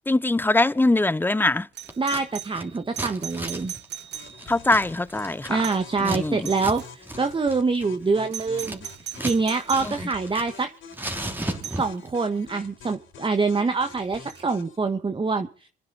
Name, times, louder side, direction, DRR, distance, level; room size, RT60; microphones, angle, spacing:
voice 1, 0.1-1.7 4.5-5.6 6.0-6.5, left 2 dB, 10° left, 0.7 m, -22 dB
Doorbell, 1.7-4.7 5.6-6.0 6.4-6.9 8.3-10.0 11.6-11.9 14.3-14.4, right 10 dB, 60° right, 0.9 m, -39 dB
Scissors, 1.9-2.2 2.5-6.2 6.5-6.8 7.0-7.2 7.5-9.4 9.7-10.6 10.9-12.1, right 1 dB, 10° right, 3.2 m, -34 dB
voice 2, 2.0-3.7 5.5-8.9 9.2-10.7 11.7-15.7, right 4 dB, 25° right, 1.3 m, -25 dB
sound 1, 4.1-14.8, left 6 dB, 75° left, 3.8 m, -46 dB
26.5 x 10.0 x 4.0 m
cardioid pair, 90°, 20 cm